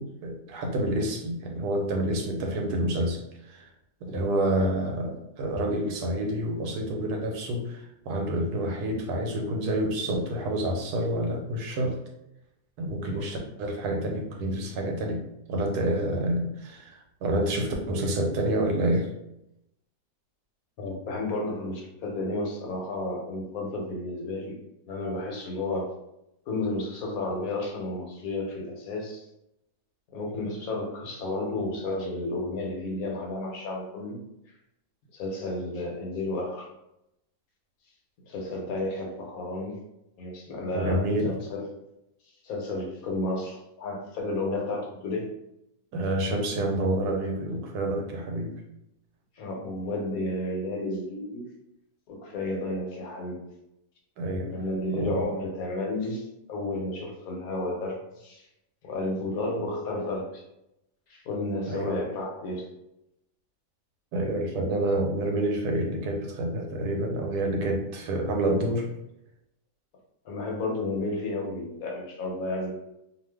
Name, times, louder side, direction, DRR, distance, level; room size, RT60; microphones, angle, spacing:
voice 1, 0.0-3.7 4.0-12.0 12.8-15.2 15.5-19.1 40.7-41.3 45.9-48.6 54.2-54.5 54.9-55.2 61.7-62.0 64.1-68.9, right 1 dB, 90° right, 2 dB, 1.2 m, -28 dB
voice 2, 20.8-24.6 24.9-25.9 26.5-29.3 30.1-34.2 35.1-36.7 38.3-39.8 40.2-41.7 42.4-45.3 49.4-51.5 52.1-53.4 54.5-58.4 58.8-60.4 61.1-62.7 70.2-72.7, left 2 dB, 70° left, 0 dB, 1.2 m, -32 dB
2.5 x 2.4 x 3.3 m, 0.84 s
omnidirectional pair, 1.6 m